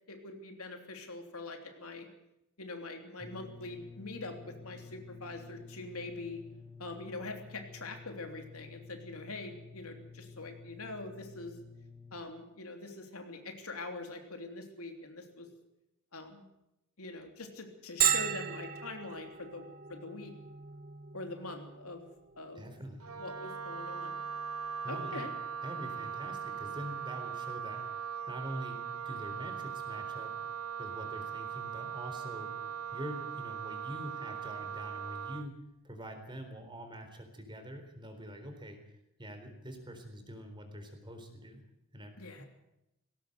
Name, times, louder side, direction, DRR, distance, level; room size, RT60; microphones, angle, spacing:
voice 1, 0.1-2.1 2.6-6.4 6.8-11.6 12.1-15.5 16.1-16.5 17.0-20.3 21.1-22.1 22.4-22.6 23.1-24.2 24.9-25.3 42.2-42.5, left 2 dB, 75° left, 4 dB, 3.2 m, -43 dB
sound 1, 3.2-12.2, left 4 dB, 15° left, 1.4 m, -51 dB
Bell, 18.0-33.4, right 9 dB, 45° right, 1.2 m, -40 dB
voice 2, 22.6-23.1 24.8-25.3 25.6-27.9 28.3-30.3 30.8-32.5 32.9-38.8 39.2-41.6 41.9-42.5, equal, 20° right, 5 dB, 4.0 m, -45 dB
Wind instrument woodwind instrument, 23.0-35.5, right 7 dB, 80° right, 1.3 m, -40 dB
19.0 x 17.5 x 8.0 m, 0.87 s
head